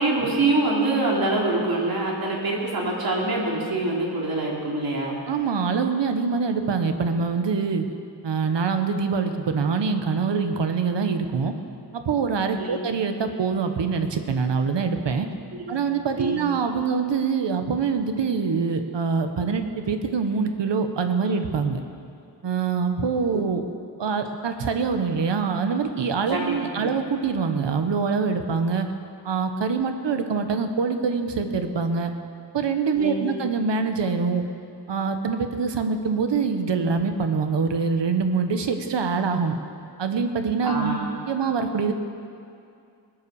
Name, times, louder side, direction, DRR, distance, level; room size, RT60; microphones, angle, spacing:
voice 1, 0.0-5.2 12.6-12.9 15.7-15.8 16.2-16.5 26.3-26.9 33.0-33.3 40.6-41.1, right 2 dB, 55° right, -3 dB, 3.0 m, -25 dB
voice 2, 5.3-7.9 8.2-11.5 11.9-15.3 15.7-21.8 22.4-23.7 24.0-28.9 29.2-32.1 32.5-34.4 34.9-39.5 40.0-41.0 41.3-41.9, right 5 dB, 80° right, 7 dB, 1.2 m, -24 dB
19.5 x 9.8 x 7.0 m, 2.5 s
wide cardioid pair, 155°, 42 cm